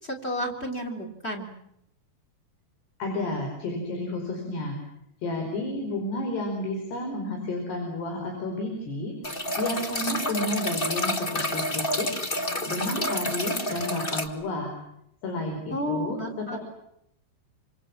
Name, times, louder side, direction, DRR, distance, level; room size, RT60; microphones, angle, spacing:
voice 1, 0.0-1.5 15.7-16.6, equal, 15° left, 5 dB, 3.5 m, -31 dB
voice 2, 3.0-4.8 5.2-9.1 9.5-12.1 12.7-14.7 15.2-16.6, left 1 dB, 75° left, 2 dB, 6.8 m, -31 dB
sound 1, 9.2-14.3, left 1 dB, 55° left, 0.6 m, -29 dB
27.5 x 26.5 x 7.4 m, 0.76 s
omnidirectional pair, 4.8 m